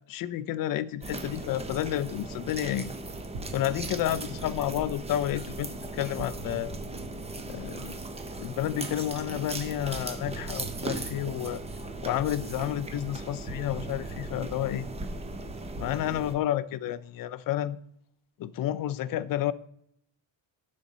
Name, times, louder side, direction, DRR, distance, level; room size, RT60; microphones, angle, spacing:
voice 1, 0.1-2.9 3.5-6.7 7.5-8.0 8.4-11.6 12.0-14.9 15.8-17.8 18.4-19.5, left 12 dB, 45° left, 0.6 m, -30 dB
sound 1, 1.0-16.4, right 2 dB, 15° right, 0.7 m, -38 dB
sound 2, 3.3-9.1 10.2-16.5, right 3 dB, 50° right, 1.9 m, -46 dB
11.5 x 4.2 x 6.1 m
cardioid pair, 165°, 46 cm